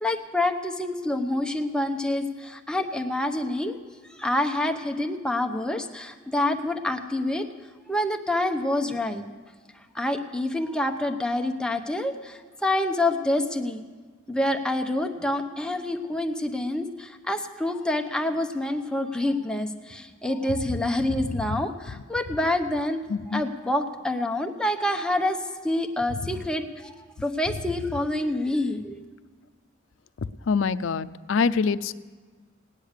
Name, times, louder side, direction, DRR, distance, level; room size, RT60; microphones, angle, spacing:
voice 1, 0.0-3.8 4.2-7.4 7.9-9.2 9.9-13.8 14.3-23.0 23.3-25.4 25.6-26.9 27.2-29.0, left 1 dB, 5° left, 5 dB, 0.8 m, -27 dB
voice 2, 21.1-21.6 23.1-23.4 26.2-26.4 30.5-31.9, left 5 dB, 75° left, 13 dB, 0.5 m, -26 dB
17.5 x 9.8 x 6.6 m, 1.4 s
head